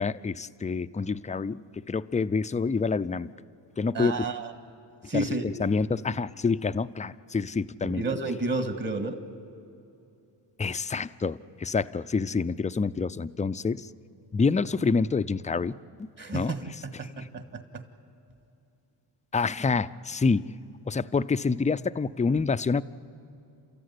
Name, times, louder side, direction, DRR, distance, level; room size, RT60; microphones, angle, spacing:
voice 1, 0.0-3.3 3.8-4.2 5.1-5.2 5.6-8.0 10.6-13.9 14.3-15.7 16.0-16.1 16.3-16.5 17.2-17.3 19.3-20.5 20.9-22.8, left 4 dB, 15° left, 13 dB, 0.5 m, -27 dB
voice 2, 3.9-4.5 5.1-5.5 7.8-9.2 16.2-17.8, right 2 dB, 40° right, 7 dB, 2.0 m, -31 dB
29.5 x 13.5 x 9.7 m, 2.7 s
cardioid pair, 60°, 50 cm